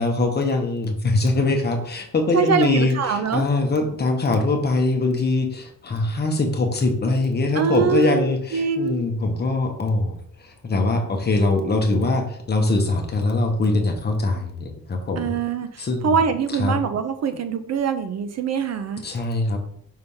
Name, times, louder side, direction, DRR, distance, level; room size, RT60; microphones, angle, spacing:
voice 1, 0.0-15.3 15.8-16.2 16.5-16.8 19.0-19.6, left 2 dB, 30° left, 4 dB, 0.9 m, -22 dB
voice 2, 2.3-3.5 7.6-9.0 15.2-19.0, right 7 dB, 50° right, 9 dB, 0.5 m, -24 dB
5.6 x 3.3 x 5.4 m, 0.67 s
wide cardioid pair, 175°, 34 cm